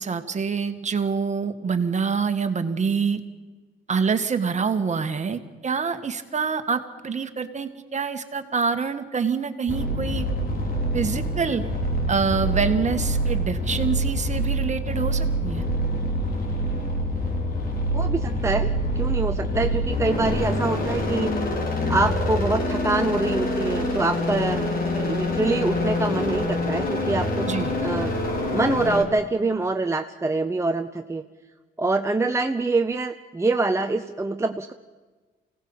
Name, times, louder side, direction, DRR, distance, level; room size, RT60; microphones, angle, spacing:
voice 1, 0.0-3.2 3.9-10.2 10.9-11.7 12.1-15.6 27.4-27.7, right 5 dB, 35° right, 8 dB, 1.7 m, -26 dB
sound 1, 9.7-29.0, equal, 45° left, 3.8 m, -25 dB
voice 2, 17.9-18.7 19.0-21.4 21.9-27.5 27.8-28.1 28.5-31.2 31.8-34.7, right 3 dB, 15° right, 5 dB, 0.8 m, -25 dB
25.0 x 17.0 x 7.2 m, 1.3 s
cardioid pair, 90°, 20 cm